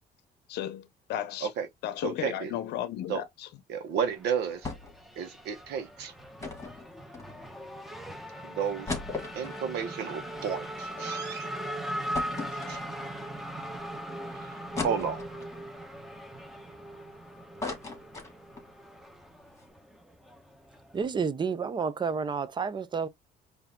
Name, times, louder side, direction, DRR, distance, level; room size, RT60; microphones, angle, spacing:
voice 1, 0.5-1.5 1.8-3.5, left 11 dB, 80° left, 0.7 m, -34 dB
voice 2, 2.0-2.5 3.1-3.2 3.7-4.7 5.2-6.1 8.4-8.9 9.3-11.5 12.7-12.8 14.3-14.5 14.8-15.2, right 7 dB, 80° right, 1.1 m, -32 dB
Race car auto racing / Accelerating revving vroom, 4.1-21.0, right 1 dB, ahead, 1.1 m, -40 dB
sound 1, 4.6-5.1 5.3-5.4 6.4-7.7 8.2-8.3 8.6-11.1 11.4-11.5 12.1-13.3 13.8-13.9 14.8-15.6 16.1-17.1 17.4-18.7 19.1-19.2 19.4-19.6, left 3 dB, 20° left, 1.9 m, -38 dB
voice 3, 20.9-23.1, right 5 dB, 25° right, 0.6 m, -30 dB
4.7 x 2.7 x 3.6 m
cardioid pair, 110°, 17 cm